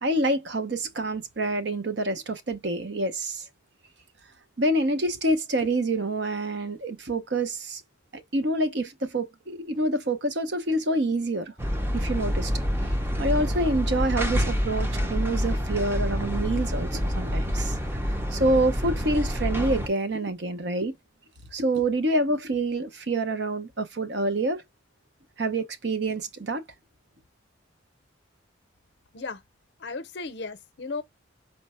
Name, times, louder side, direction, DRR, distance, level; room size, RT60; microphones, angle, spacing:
voice 1, 0.0-3.4 4.6-7.8 8.1-11.5 11.9-17.7 18.3-20.9 21.5-24.6 25.4-26.6, right 1 dB, 60° right, 0.7 m, -27 dB
sound 1, 11.6-19.9, equal, 10° right, 0.5 m, -27 dB
voice 2, 29.8-31.0, left 4 dB, 60° left, 0.6 m, -35 dB
4.4 x 2.1 x 4.2 m
head